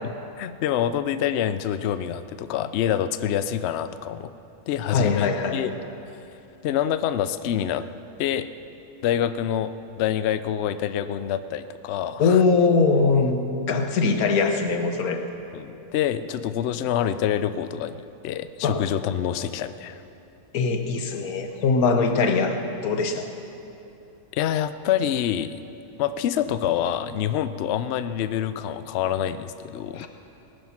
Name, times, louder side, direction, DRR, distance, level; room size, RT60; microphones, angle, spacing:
voice 1, 0.4-4.3 4.7-5.7 6.6-7.9 8.2-8.5 9.0-9.7 10.0-12.4 15.5-20.0 24.3-25.6 26.0-30.1, left 10 dB, 85° left, 12 dB, 0.5 m, -26 dB
voice 2, 4.9-5.6 12.2-13.4 13.7-15.2 18.6-18.8 20.5-23.3 30.0-30.1, left 4 dB, 65° left, 6 dB, 1.5 m, -21 dB
18.5 x 10.0 x 5.8 m, 2.9 s
omnidirectional pair, 1.7 m